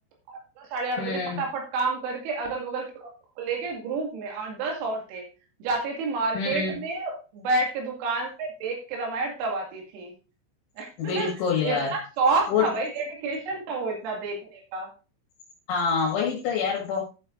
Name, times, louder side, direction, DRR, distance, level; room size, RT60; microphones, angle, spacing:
voice 1, 0.3-3.1 3.4-5.2 5.6-10.1 10.8-11.3 11.6-14.9, right 3 dB, 85° right, 0 dB, 5.1 m, -29 dB
voice 2, 1.0-1.4 6.3-6.8 11.0-11.9 12.5-12.7 15.7-17.0, left 6 dB, 70° left, -1 dB, 4.0 m, -26 dB
13.5 x 7.8 x 2.6 m, 0.33 s
omnidirectional pair, 6.0 m